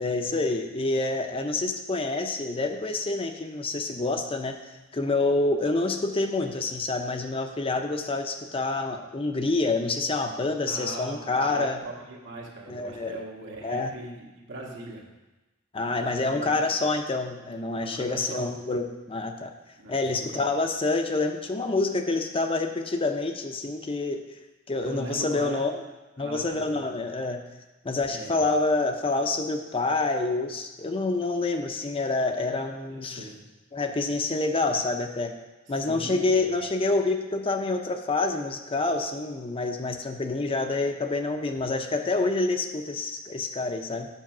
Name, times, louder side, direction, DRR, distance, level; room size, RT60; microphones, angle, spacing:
voice 1, 0.0-4.6 4.9-11.8 12.7-13.2 13.6-13.9 15.7-19.5 19.9-24.2 24.7-25.7 26.2-27.4 27.8-33.3 33.7-35.3 35.7-44.1, left 3 dB, 25° left, 5 dB, 0.6 m, -27 dB
voice 2, 10.7-15.0 15.8-16.8 17.8-18.5 19.8-20.4 24.8-25.6 26.2-27.0 28.0-28.4 32.9-33.4 35.7-36.5, right 2 dB, 60° right, -1 dB, 1.7 m, -40 dB
7.5 x 6.4 x 5.9 m, 1.1 s
head